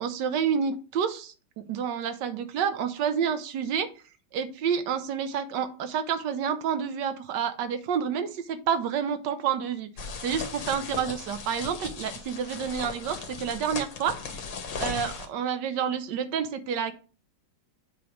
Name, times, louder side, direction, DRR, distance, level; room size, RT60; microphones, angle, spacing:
voice 1, 0.0-3.9 4.3-9.9 10.2-14.2 14.8-16.9, right 7 dB, 80° right, 10 dB, 1.4 m, -29 dB
sound 1, 10.0-15.3, left 5 dB, 90° left, 1.7 m, -37 dB
8.1 x 3.0 x 5.0 m, 0.37 s
omnidirectional pair, 1.9 m